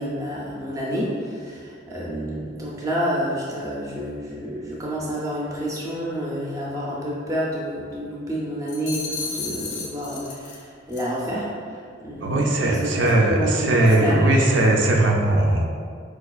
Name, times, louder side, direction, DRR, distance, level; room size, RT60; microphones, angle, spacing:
voice 1, 0.0-14.4, equal, 15° right, -5 dB, 0.5 m, -29 dB
sound 1, 8.7-10.6 10.9-11.2, left 4 dB, 80° left, 0.6 m, -33 dB
voice 2, 12.2-15.6, right 1 dB, 75° right, 0 dB, 0.4 m, -19 dB
4.4 x 2.3 x 2.3 m, 2.1 s
head